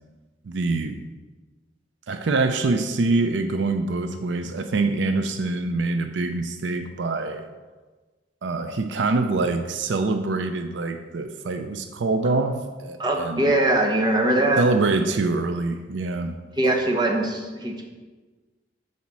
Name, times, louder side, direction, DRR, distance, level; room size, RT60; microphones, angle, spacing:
voice 1, 0.4-1.0 2.1-7.5 8.4-13.5 14.6-16.4, right 3 dB, 75° right, 7 dB, 0.5 m, -25 dB
voice 2, 13.0-14.6 16.6-17.8, right 1 dB, 25° right, 1 dB, 0.9 m, -21 dB
7.3 x 4.2 x 6.1 m, 1.3 s
head